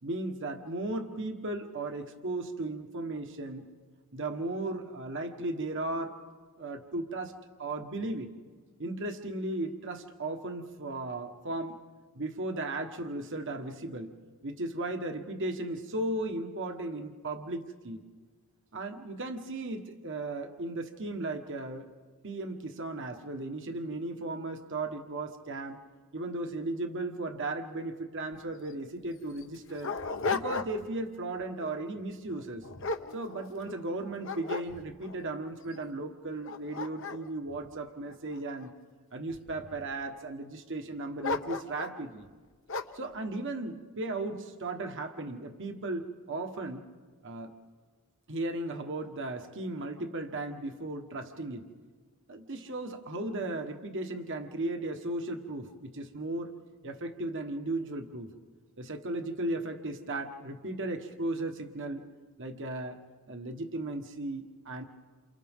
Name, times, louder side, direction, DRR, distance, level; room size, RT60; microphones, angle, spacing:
voice 1, 0.0-3.7 4.1-6.2 6.6-8.3 8.8-11.8 12.1-14.1 14.4-18.0 18.7-21.9 22.2-25.8 26.1-29.9 30.3-32.7 33.1-38.7 39.1-42.3 42.9-46.9 47.2-47.5 48.3-51.7 52.3-56.5 56.8-58.3 58.8-62.0 62.4-63.0 63.3-64.8, right 2 dB, 60° right, 5 dB, 1.4 m, -36 dB
Dog, 28.3-28.4 28.7-28.8 29.4-31.0 31.4-31.7 32.3-33.8 34.2-35.2 35.7-35.8 36.3-38.6 39.3-39.9 41.2-42.0 42.7-43.1, left 4 dB, 60° left, 1.0 m, -36 dB
29.0 x 29.0 x 3.7 m, 1.5 s
head